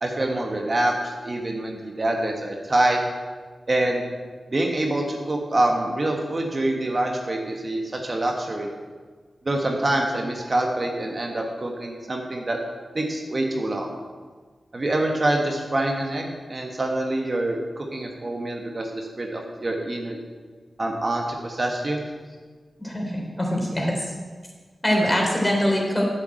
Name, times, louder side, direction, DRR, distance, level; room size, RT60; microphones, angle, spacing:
voice 1, 0.0-3.0 3.7-4.0 4.5-8.7 9.4-12.6 12.9-13.9 14.7-20.2 20.8-22.0, right 1 dB, 45° right, 1 dB, 1.7 m, -25 dB
voice 2, 22.8-24.1 24.8-26.0, equal, 20° left, -1 dB, 3.7 m, -23 dB
8.2 x 7.2 x 8.0 m, 1.5 s
cardioid pair, 40°, 0 cm